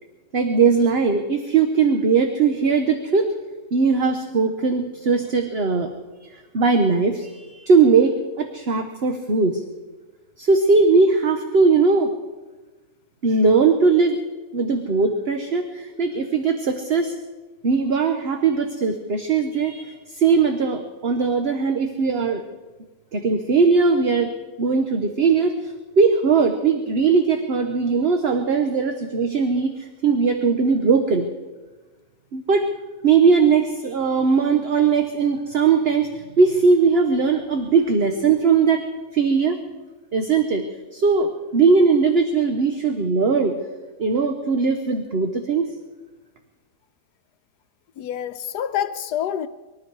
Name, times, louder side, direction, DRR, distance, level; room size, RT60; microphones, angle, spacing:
voice 1, 0.3-3.3 3.7-5.9 6.3-9.6 10.4-12.1 13.2-14.2 14.5-17.2 17.6-22.4 23.1-24.3 24.6-31.3 32.3-32.7 33.0-38.8 39.1-39.6 40.1-40.6 40.9-43.5 44.0-45.7, right 4 dB, 45° right, 1.1 m, -19 dB
voice 2, 48.0-49.5, left 10 dB, 85° left, 1.2 m, -27 dB
24.5 x 12.5 x 4.7 m
omnidirectional pair, 1.7 m